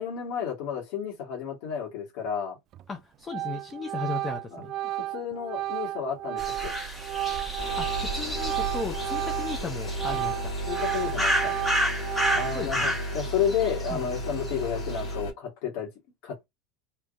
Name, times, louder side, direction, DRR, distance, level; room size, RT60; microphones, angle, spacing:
voice 1, 0.0-2.6 4.5-6.7 10.1-10.2 10.7-11.5 12.3-15.9 16.2-16.5, left 8 dB, 65° left, 1.7 m, -32 dB
Organ, 2.7-3.0 3.3-9.6 9.9-12.8, right 14 dB, 40° right, 0.3 m, -32 dB
voice 2, 2.9-4.7 7.8-10.5 12.5-12.9 13.9-14.1, left 4 dB, 20° left, 0.6 m, -36 dB
sound 1, 6.4-14.5 14.8-15.1, equal, 5° left, 1.6 m, -31 dB
sound 2, 7.6-15.3, equal, 80° left, 2.1 m, -34 dB
3.5 x 2.8 x 2.6 m
supercardioid pair, 130°, 0 cm